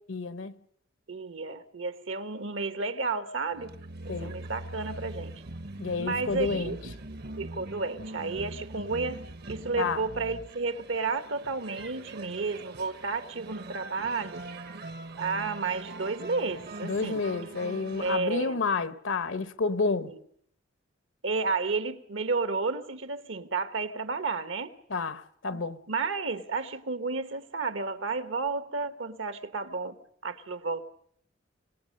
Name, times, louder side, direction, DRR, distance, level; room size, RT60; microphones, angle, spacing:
voice 1, 0.1-0.5 4.1-4.4 5.8-6.8 9.8-10.0 16.8-20.1 24.9-25.8, left 4 dB, 80° left, 1.0 m, -30 dB
voice 2, 1.1-3.7 4.0-5.3 6.0-6.8 7.4-14.4 15.2-17.2 18.0-18.6 20.0-20.2 21.2-24.7 25.5-25.6 25.9-30.0 30.2-30.8, right 4 dB, 80° right, 1.3 m, -32 dB
sound 1, 3.5-18.2, right 2 dB, 55° right, 0.8 m, -42 dB
26.0 x 18.5 x 6.5 m
head